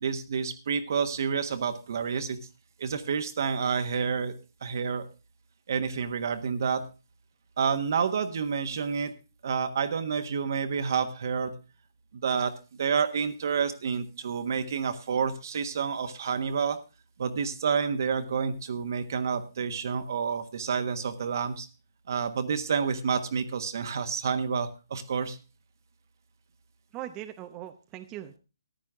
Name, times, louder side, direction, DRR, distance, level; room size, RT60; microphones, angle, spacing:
voice 1, 0.0-2.4 2.8-4.3 4.6-5.1 5.7-6.8 7.6-9.1 9.4-11.5 12.1-16.8 17.2-21.7 22.1-25.4, right 6 dB, 55° right, 9 dB, 1.4 m, -29 dB
voice 2, 26.9-28.4, right 12 dB, 20° right, 6 dB, 0.8 m, -40 dB
14.0 x 10.5 x 3.6 m, 0.31 s
hypercardioid pair, 150°, 2 cm